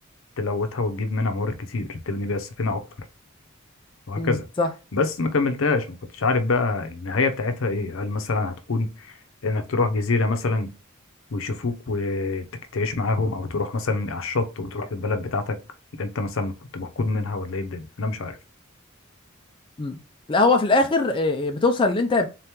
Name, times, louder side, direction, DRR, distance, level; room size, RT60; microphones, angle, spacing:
voice 1, 0.4-2.8 4.1-4.4 4.9-5.9 6.1-9.1 9.4-10.7 11.3-12.4 12.7-15.6 16.0-18.4, left 3 dB, 70° left, 0.6 m, -25 dB
voice 2, 4.2-4.7 19.8-20.0 20.3-22.3, left 3 dB, 25° left, 0.4 m, -21 dB
3.8 x 2.9 x 3.4 m
head